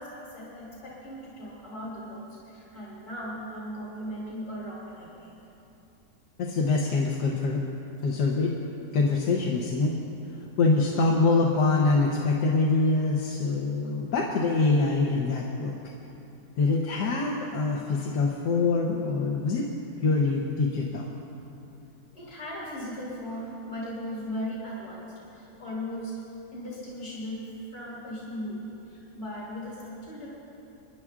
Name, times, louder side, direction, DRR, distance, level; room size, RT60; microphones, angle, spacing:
voice 1, 0.0-5.4 22.1-26.2 26.5-30.3, equal, 70° left, -7 dB, 3.3 m, -38 dB
voice 2, 6.4-7.6 8.0-8.5 8.9-9.9 10.6-15.8 16.6-19.7 20.0-21.1, left 3 dB, 90° left, -2 dB, 1.5 m, -24 dB
27.0 x 11.0 x 2.5 m, 2.9 s
omnidirectional pair, 1.7 m